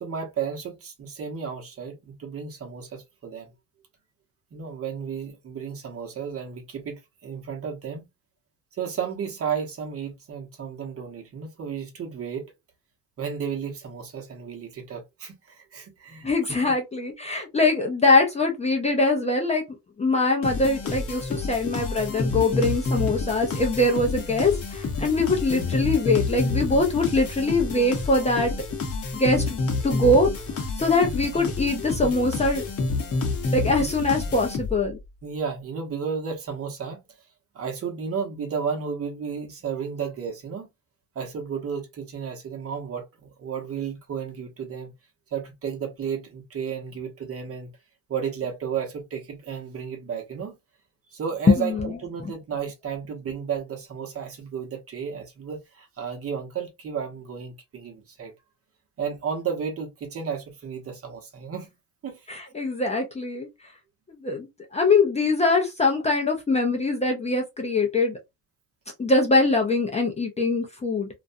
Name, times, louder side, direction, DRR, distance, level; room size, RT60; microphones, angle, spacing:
voice 1, 0.0-3.5 4.5-8.0 8.7-12.5 13.2-16.3 35.2-37.0 37.5-40.7 41.1-44.9 45.3-47.7 48.1-50.6 51.1-58.3 59.0-61.7 62.0-62.3, right 7 dB, 40° right, 0.9 m, -33 dB
voice 2, 16.2-19.6 20.0-28.5 29.1-30.3 30.8-32.7 33.5-35.0 51.5-51.9 62.3-63.5 64.2-68.2 69.0-71.1, left 2 dB, 20° left, 0.5 m, -23 dB
sound 1, 20.4-35.0, left 3 dB, 40° left, 0.8 m, -29 dB
2.4 x 2.1 x 2.6 m
cardioid pair, 115°, 36 cm